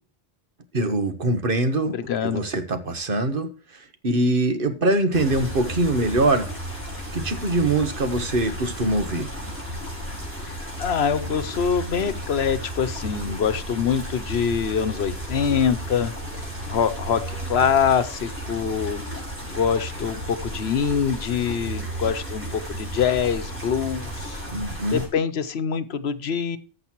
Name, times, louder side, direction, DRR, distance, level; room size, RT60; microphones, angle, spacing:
voice 1, 0.7-1.9 2.2-3.5 4.0-6.5 7.1-9.3 24.5-25.0, right 2 dB, 60° right, 1.4 m, -23 dB
voice 2, 1.9-2.5 10.4-19.0 19.5-24.4 24.9-26.6, left 7 dB, 85° left, 1.1 m, -24 dB
sound 1, 5.1-25.1, right 1 dB, 10° right, 4.6 m, -33 dB
14.5 x 6.6 x 3.0 m
omnidirectional pair, 1.0 m